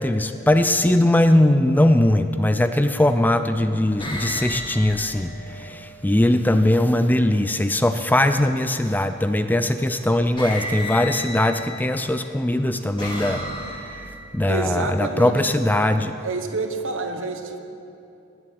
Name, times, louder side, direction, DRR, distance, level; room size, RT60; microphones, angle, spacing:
voice 1, 0.0-13.4 14.3-16.1, left 1 dB, 10° left, 9 dB, 0.4 m, -20 dB
sound 1, 1.7-2.0 2.9-3.4 4.0-6.0 8.2-8.8 9.8-10.0 10.4-12.0 12.6-14.3, left 1 dB, 25° left, 2.8 m, -34 dB
voice 2, 14.5-15.4 16.2-17.6, right 3 dB, 65° right, 6 dB, 1.4 m, -28 dB
19.0 x 7.9 x 8.7 m, 2.7 s
head